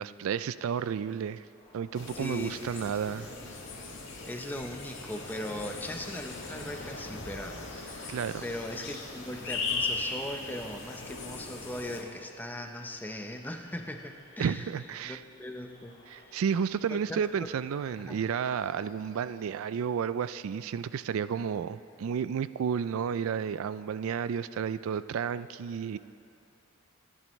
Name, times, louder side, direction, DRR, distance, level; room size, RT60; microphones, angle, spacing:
voice 1, 0.0-1.4 1.7-3.3 8.1-8.4 14.4-15.2 16.1-26.0, right 7 dB, 70° right, 15 dB, 0.3 m, -32 dB
sound 1, 1.5-19.5, left 1 dB, 25° left, 3.4 m, -59 dB
sound 2, 1.9-12.0, left 3 dB, 55° left, 2.0 m, -38 dB
voice 2, 2.1-2.8 3.3-3.5 4.3-8.1 8.4-14.6 15.0-16.4 16.9-17.5 18.0-18.2, left 1 dB, 10° left, 4 dB, 0.7 m, -39 dB
26.0 x 11.0 x 3.1 m, 2.9 s
head